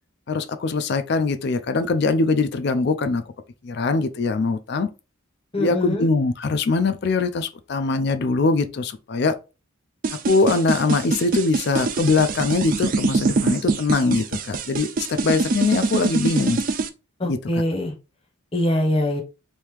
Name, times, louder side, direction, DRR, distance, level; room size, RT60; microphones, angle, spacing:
voice 1, 0.3-3.2 3.6-4.9 5.6-9.3 10.3-16.6 17.2-17.4, left 3 dB, 50° left, 0.4 m, -22 dB
voice 2, 5.5-6.1 17.2-17.9 18.5-19.2, left 1 dB, 25° left, 0.7 m, -23 dB
sound 1, 10.0-16.9, right 3 dB, 40° right, 0.3 m, -24 dB
3.0 x 2.7 x 3.4 m
head